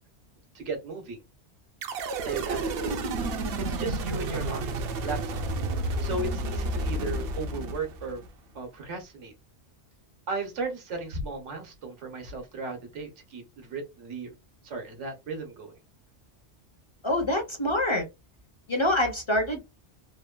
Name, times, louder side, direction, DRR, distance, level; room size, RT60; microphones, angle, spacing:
voice 1, 0.5-1.2 2.2-5.4 6.0-8.2 8.5-9.3 10.3-14.3 14.6-15.7, right 3 dB, 85° right, 1.3 m, -36 dB
sound 1, 1.8-8.3, right 2 dB, 65° right, 0.7 m, -31 dB
voice 2, 17.0-18.1 18.7-19.6, left 1 dB, 35° left, 0.5 m, -25 dB
3.2 x 2.1 x 2.3 m
omnidirectional pair, 1.2 m